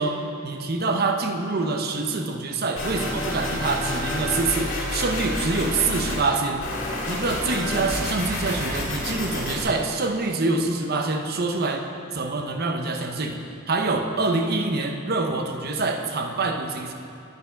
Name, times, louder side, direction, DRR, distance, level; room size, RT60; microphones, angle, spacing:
voice 1, 0.0-6.7 7.1-11.8 12.1-13.4 13.7-16.9, right 3 dB, 50° right, 4 dB, 0.7 m, -25 dB
sound 1, 2.8-6.2 6.6-9.6, left 1 dB, 60° left, 2.2 m, -29 dB
9.5 x 7.0 x 5.2 m, 2.5 s
head